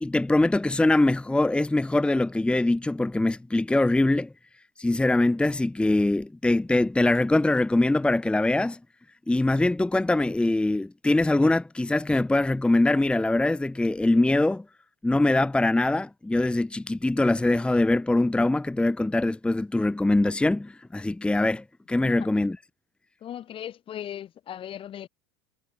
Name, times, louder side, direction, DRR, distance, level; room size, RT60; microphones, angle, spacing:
voice 1, 0.0-4.3 4.8-8.8 9.3-14.6 15.0-22.6, left 2 dB, 10° left, 1.1 m, -23 dB
voice 2, 23.2-25.1, left 10 dB, 45° left, 2.4 m, -38 dB
hypercardioid pair, 85°, 13 cm